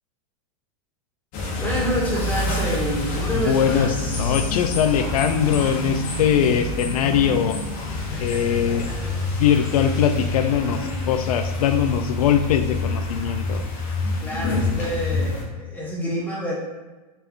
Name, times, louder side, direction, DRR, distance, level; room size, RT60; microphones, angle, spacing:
sound 1, 1.3-15.4, left 2 dB, 45° left, 1.1 m, -27 dB
voice 1, 1.6-4.9 8.1-9.3 14.2-16.5, equal, 10° left, -5 dB, 1.2 m, -29 dB
voice 2, 3.4-7.6 8.2-8.9 9.4-13.6, left 8 dB, 80° left, 9 dB, 0.5 m, -21 dB
4.3 x 3.4 x 2.9 m, 1.2 s
hypercardioid pair, 120°, 19 cm